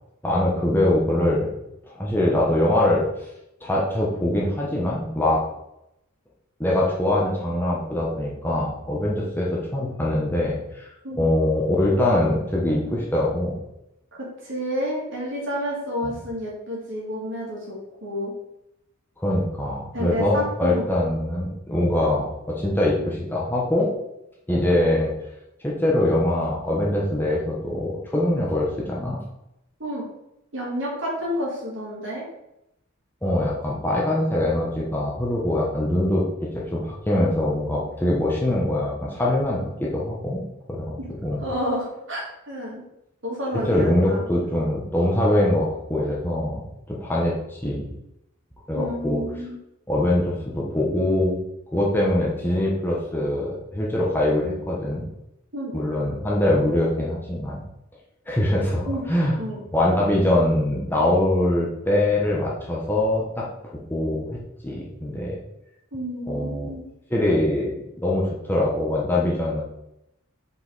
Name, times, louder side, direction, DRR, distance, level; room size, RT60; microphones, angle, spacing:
voice 1, 0.2-1.5 1.9-3.0 3.6-5.4 6.6-13.6 19.2-23.9 24.5-25.1 25.6-29.2 33.2-40.4 40.7-41.4 43.7-46.6 46.9-47.9 48.7-49.2 49.9-51.4 51.7-55.1 55.7-57.6 58.3-59.3 59.7-63.5 63.9-64.4 64.6-65.4 66.3-66.7 67.1-69.6, left 1 dB, 10° left, -4 dB, 1.0 m, -23 dB
voice 2, 14.2-18.3 19.9-20.8 29.8-30.0 30.5-32.2 41.4-42.8 43.2-44.2 48.7-49.6 55.5-55.7 58.8-59.0 59.4-59.6 65.9-66.8, equal, 60° right, -5 dB, 2.7 m, -30 dB
5.6 x 5.1 x 4.1 m, 0.84 s
head